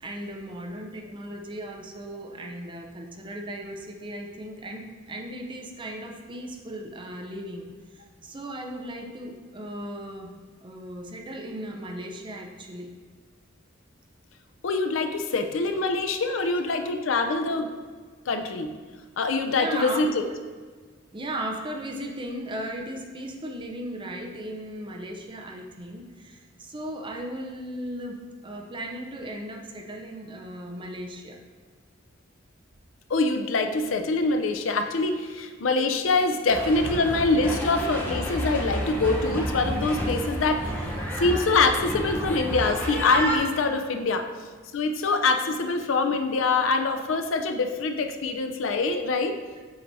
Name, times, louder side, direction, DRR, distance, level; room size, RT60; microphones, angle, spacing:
voice 1, 0.0-7.6 7.9-10.3 10.6-12.9 15.1-15.3 16.4-16.5 19.5-20.0 21.1-31.4 45.4-45.6, right 1 dB, 25° right, 2 dB, 0.6 m, -37 dB
voice 2, 14.6-17.7 18.3-18.7 19.2-20.2 33.1-40.7 41.2-44.3 44.7-49.3, left 3 dB, 85° left, 6 dB, 0.5 m, -24 dB
sound 1, 36.5-43.4, equal, 10° left, 0.8 m, -30 dB
7.7 x 4.6 x 2.7 m, 1.5 s
head